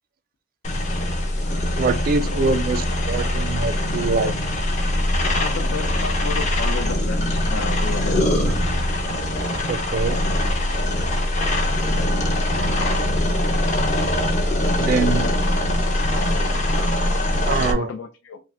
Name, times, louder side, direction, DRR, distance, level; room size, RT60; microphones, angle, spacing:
sound 1, 0.6-17.7, left 1 dB, 35° left, 0.8 m, -22 dB
voice 1, 1.7-2.8 3.1-4.3 8.4-8.8 9.7-10.2 14.8-15.3 17.4-17.9, right 4 dB, 45° right, 0.4 m, -24 dB
voice 2, 2.2-2.6 5.3-8.3 17.6-18.4, left 4 dB, 70° left, 0.5 m, -32 dB
4.8 x 2.1 x 3.5 m
head